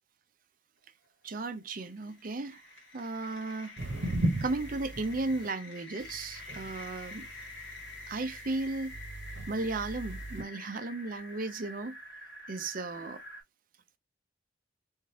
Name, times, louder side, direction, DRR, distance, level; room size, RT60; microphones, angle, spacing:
voice 1, 1.2-2.6 2.9-3.8 4.4-7.3 8.1-8.9 9.5-12.0 12.5-13.2, right 3 dB, 50° right, 0.6 m, -35 dB
sound 1, 1.5-13.4, left 2 dB, 75° left, 1.8 m, -48 dB
sound 2, 3.8-5.5 6.0-10.4, right 1 dB, 80° right, 0.9 m, -37 dB
3.6 x 3.6 x 2.7 m
head